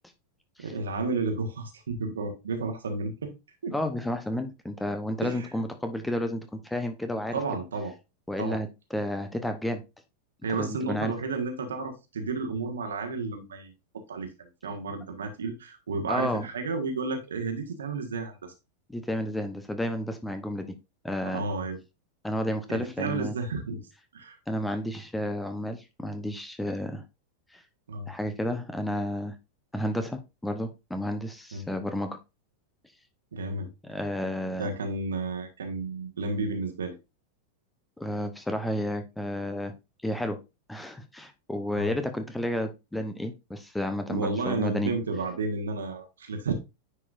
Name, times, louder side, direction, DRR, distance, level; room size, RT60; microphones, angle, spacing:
voice 1, 0.6-3.3 3.6-3.7 5.2-5.5 7.3-7.9 8.4-8.6 10.4-13.7 14.1-18.5 21.2-21.8 22.7-23.8 24.1-24.4 27.9-28.1 31.5-31.7 33.3-33.7 34.6-36.9 41.7-41.9 44.1-46.5, right 3 dB, 65° right, 1.5 m, -32 dB
voice 2, 3.7-7.4 8.3-9.8 10.6-11.1 16.1-16.5 18.9-20.8 21.0-21.4 22.2-23.3 24.5-27.0 27.5-27.6 28.1-29.3 29.7-32.2 33.8-34.7 38.0-39.7 40.0-40.4 40.7-44.9, left 1 dB, 5° left, 0.8 m, -31 dB
9.8 x 4.7 x 2.6 m
figure-of-eight pair, 90°, 0 cm